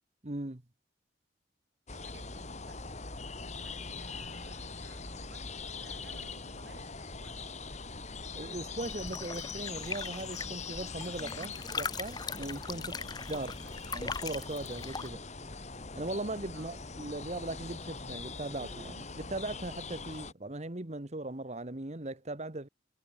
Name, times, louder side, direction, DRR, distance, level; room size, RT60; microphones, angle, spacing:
voice 1, 0.2-0.6 8.4-13.0 13.3-13.6 13.9-15.2 15.9-22.7, right 2 dB, 35° right, 1.4 m, -39 dB
sound 1, 1.9-20.3, left 4 dB, 40° left, 2.4 m, -42 dB
voice 2, 1.9-3.0 3.6-7.5 12.7-13.1 13.6-14.0 15.0-15.4 16.5-16.8, right 3 dB, 60° right, 5.1 m, -59 dB
sound 2, 8.8-15.1, left 4 dB, 20° left, 1.1 m, -40 dB
sound 3, 9.6-19.9, equal, 20° right, 4.7 m, -58 dB
head